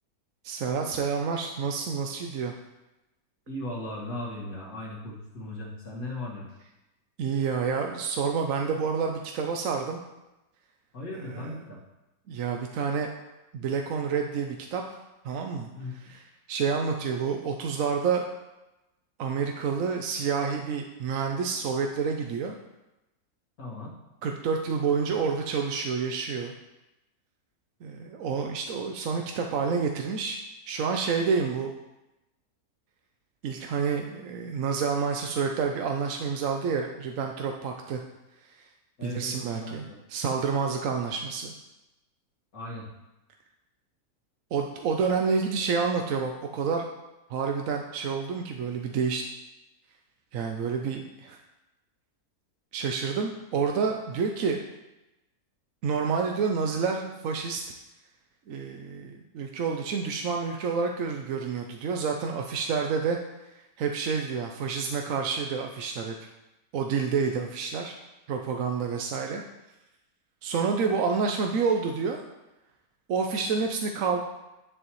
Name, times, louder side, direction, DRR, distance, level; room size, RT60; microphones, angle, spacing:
voice 1, 0.4-2.6 7.2-10.0 11.2-11.6 12.3-13.1 13.5-14.8 15.2-15.7 16.0-16.2 16.5-18.2 19.2-22.5 24.2-26.5 27.8-30.4 30.7-31.7 33.4-38.0 38.6-38.7 39.0-41.5 44.5-46.9 47.3-49.2 50.3-51.4 52.7-54.6 55.8-57.6 58.5-63.2 63.8-66.1 66.7-67.9 68.3-69.4 70.4-72.2 73.1-74.2, right 5 dB, 65° right, 3 dB, 1.0 m, -28 dB
voice 2, 3.5-6.5 10.9-11.8 15.7-16.1 23.6-23.9 39.0-40.0 42.5-42.9, left 1 dB, 65° left, -4 dB, 2.3 m, -37 dB
9.9 x 7.6 x 3.1 m, 0.98 s
omnidirectional pair, 1.6 m